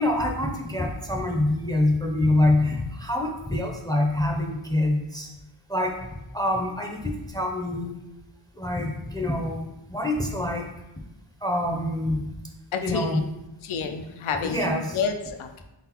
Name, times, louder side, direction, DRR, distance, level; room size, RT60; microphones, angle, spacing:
voice 1, 0.0-5.3 5.7-5.9 6.3-7.9 8.6-9.6 9.9-10.7 11.4-12.2 12.8-13.2 14.4-15.0, left 1 dB, 10° left, 1 dB, 0.5 m, -25 dB
voice 2, 12.7-13.2 13.6-14.7 14.9-15.6, left 5 dB, 75° left, 6 dB, 0.5 m, -29 dB
4.0 x 3.7 x 2.9 m, 0.94 s
wide cardioid pair, 60°, 49 cm